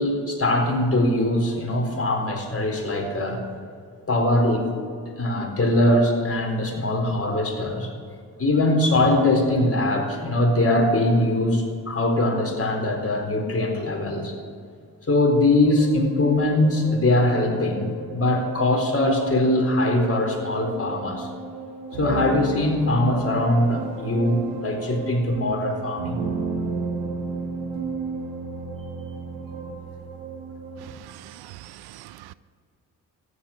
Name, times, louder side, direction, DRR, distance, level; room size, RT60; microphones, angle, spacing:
voice 1, 0.0-3.4 4.1-4.7 5.2-7.9 8.4-14.3 15.1-21.3 22.0-26.2, left 1 dB, 35° left, 1 dB, 4.2 m, -22 dB
sound 1, 15.7-30.9, right 4 dB, 85° right, 1.8 m, -33 dB
voice 2, 30.8-32.3, right 14 dB, 65° right, 17 dB, 0.6 m, -43 dB
14.5 x 11.0 x 6.7 m, 2.3 s
hypercardioid pair, 45°, 42 cm